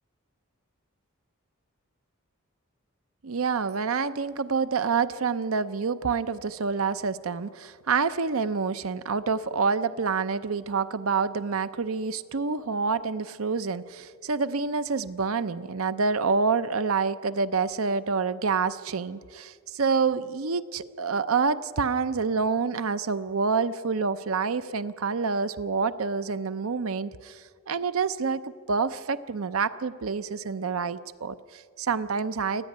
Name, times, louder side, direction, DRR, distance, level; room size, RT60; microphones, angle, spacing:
voice 1, 3.2-28.4 28.7-32.6, right 5 dB, 75° right, 14 dB, 0.7 m, -27 dB
24.5 x 16.5 x 9.4 m, 2.1 s
head